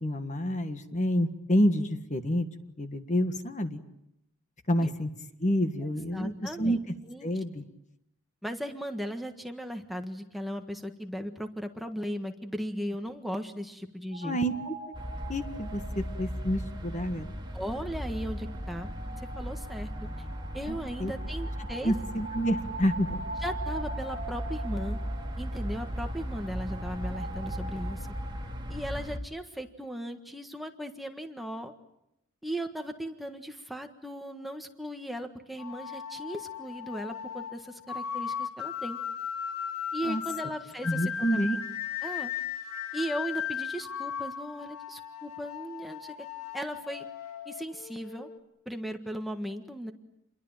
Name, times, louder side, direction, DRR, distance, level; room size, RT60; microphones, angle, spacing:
voice 1, 0.0-2.5 2.8-3.8 4.7-5.1 5.4-7.0 7.2-7.6 14.2-14.7 15.3-17.3 20.7-21.1 21.8-23.2 40.0-40.2 40.8-41.6, equal, 35° left, 8 dB, 1.6 m, -28 dB
voice 2, 6.1-6.8 7.1-7.3 8.4-14.4 17.5-18.9 19.2-19.9 20.5-21.9 23.4-25.0 25.4-28.1 28.7-31.7 32.4-39.0 39.9-41.4 42.0-42.3 42.9-46.1 46.5-47.0 47.4-48.3 48.6-49.9, equal, ahead, 4 dB, 1.6 m, -37 dB
sound 1, 14.1-28.8, right 2 dB, 40° right, 6.8 m, -43 dB
sound 2, 14.9-29.2, equal, 20° right, 2.3 m, -37 dB
sound 3, 35.6-48.4, left 8 dB, 85° left, 3.6 m, -37 dB
28.5 x 22.5 x 9.0 m, 0.82 s
head